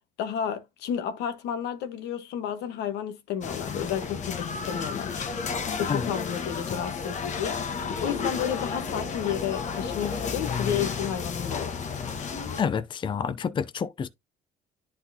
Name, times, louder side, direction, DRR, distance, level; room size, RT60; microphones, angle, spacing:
voice 1, 0.2-5.2 5.8-7.6 8.0-11.7, left 9 dB, 80° left, 1.3 m, -31 dB
sound 1, 3.4-12.6, left 5 dB, 45° left, 1.1 m, -32 dB
voice 2, 12.6-14.1, left 6 dB, 30° left, 0.5 m, -28 dB
10.5 x 4.1 x 2.8 m
cardioid pair, 110°, 17 cm